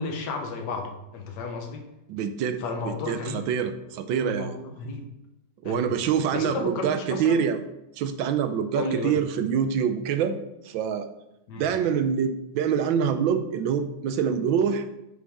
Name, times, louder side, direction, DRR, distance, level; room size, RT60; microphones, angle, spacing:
voice 1, 0.0-1.9 2.6-3.5 4.1-5.1 5.6-6.0 6.3-7.5 8.8-9.2 11.5-11.7, left 3 dB, 55° left, 4 dB, 1.5 m, -33 dB
voice 2, 2.1-4.5 5.6-7.6 8.0-10.4 10.6-11.1 11.6-14.8, right 7 dB, 75° right, 9 dB, 1.3 m, -25 dB
9.6 x 6.0 x 3.6 m, 0.91 s
omnidirectional pair, 2.4 m